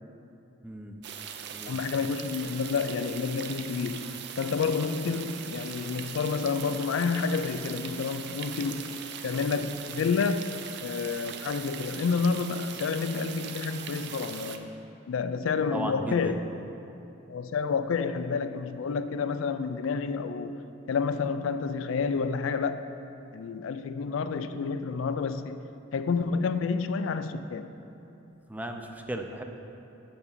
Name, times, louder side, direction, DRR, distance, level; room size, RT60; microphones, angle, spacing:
voice 1, 0.6-0.9 1.5-1.8 15.7-16.4 28.5-29.4, right 1 dB, 10° right, 0.4 m, -35 dB
sound 1, 1.0-14.6, right 8 dB, 60° right, 0.5 m, -40 dB
voice 2, 1.7-9.0 9.2-10.5 10.8-14.7 15.1-16.3 17.3-22.8 23.3-25.6 25.9-27.7, left 5 dB, 80° left, 0.4 m, -29 dB
7.1 x 6.8 x 5.5 m
head